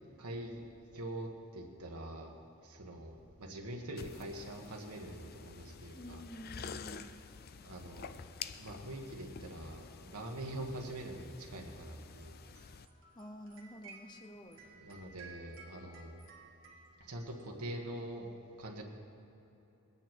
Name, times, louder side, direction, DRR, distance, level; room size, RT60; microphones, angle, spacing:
voice 1, 0.2-0.6 0.9-2.3 2.6-6.2 7.6-8.2 8.6-12.3 14.6-16.1 17.0-18.3 18.6-18.8, right 1 dB, 90° right, 1 dB, 1.7 m, -44 dB
sound 1, 4.0-12.9, left 6 dB, 40° left, 0.4 m, -49 dB
voice 2, 5.9-7.1 13.1-14.6, equal, 20° left, 4 dB, 0.7 m, -49 dB
sound 2, 12.2-18.0, right 4 dB, 60° right, 1.8 m, -57 dB
20.5 x 9.0 x 4.6 m, 3.0 s
head